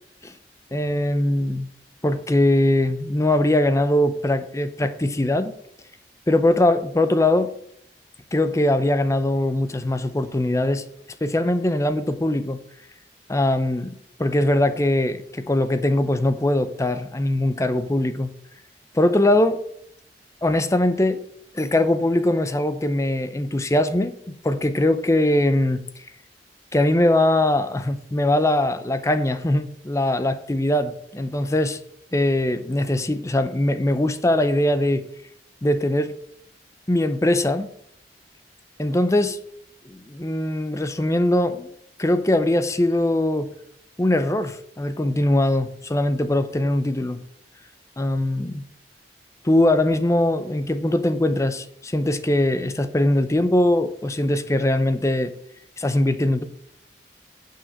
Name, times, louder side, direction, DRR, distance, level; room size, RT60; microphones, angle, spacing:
voice 1, 0.7-1.7 2.0-5.5 6.3-7.5 8.3-10.8 11.2-12.6 13.3-18.3 18.9-19.6 20.4-21.2 21.5-25.8 26.7-31.8 32.1-35.1 35.6-36.1 36.9-37.7 38.8-39.4 39.9-41.7 42.0-43.5 44.0-47.2 48.0-48.7 49.4-55.3 55.8-56.4, left 1 dB, 15° left, 0.6 m, -21 dB
7.3 x 6.1 x 6.5 m
head